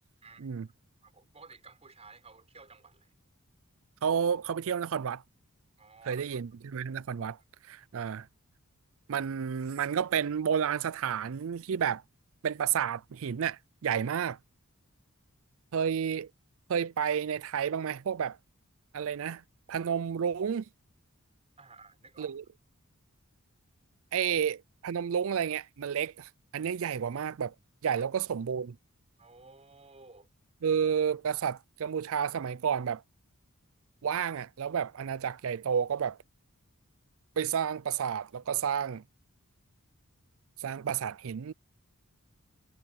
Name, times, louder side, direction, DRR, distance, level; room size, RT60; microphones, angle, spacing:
voice 1, 1.0-3.1 5.8-6.2 8.0-8.1 21.6-22.4 27.9-28.1 29.2-30.3, right 4 dB, 30° right, 6.4 m, -54 dB
voice 2, 4.0-5.2 6.1-7.4 7.7-8.3 9.1-12.0 12.4-14.4 15.7-16.3 16.7-18.4 18.9-19.4 19.7-20.7 22.2-22.4 24.1-27.5 27.8-28.8 30.6-33.0 34.0-36.2 37.4-39.0 40.6-41.5, right 7 dB, 65° right, 0.4 m, -31 dB
head